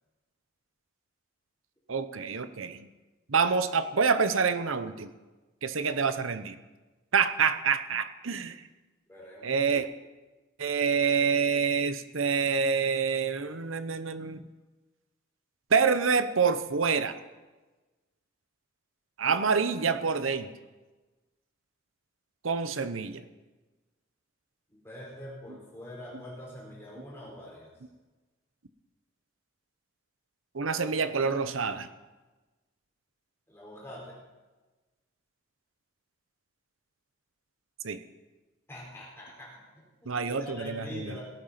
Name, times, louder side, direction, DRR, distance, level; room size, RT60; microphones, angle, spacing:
voice 1, 1.9-2.9 3.3-5.1 5.6-6.6 7.1-8.6 9.4-9.9 10.6-14.4 15.7-17.1 19.2-20.5 22.4-23.2 30.5-31.9 37.8-38.0 40.1-41.2, right 5 dB, 90° right, 11 dB, 0.9 m, -27 dB
voice 2, 9.1-9.6 24.7-27.7 33.5-34.2 38.7-40.1 40.4-41.2, left 1 dB, 10° left, -4 dB, 4.7 m, -44 dB
18.0 x 9.0 x 5.8 m, 1.2 s
head